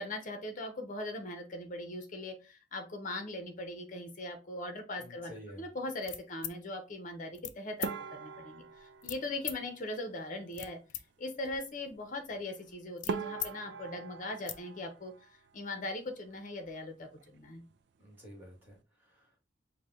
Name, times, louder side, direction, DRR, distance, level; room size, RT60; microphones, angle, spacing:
voice 1, 0.0-5.3 5.6-8.6 9.0-10.8 11.2-15.1 15.5-17.6, left 2 dB, 45° left, 6 dB, 0.9 m, -40 dB
voice 2, 5.0-5.7 18.0-19.4, equal, 10° right, -2 dB, 1.9 m, -51 dB
sound 1, 6.0-6.6 7.3-7.6 7.8-7.9 9.0-9.6 10.3-11.0 11.4-13.5 13.9-14.0 14.3-14.6, left 12 dB, 70° left, 0.4 m, -41 dB
sound 2, 7.8-10.3 12.5-12.6 13.1-15.8 16.1-16.9 17.2-17.4 17.7-17.8 18.4-18.7, right 5 dB, 65° right, 0.4 m, -42 dB
4.7 x 2.3 x 3.6 m, 0.30 s
head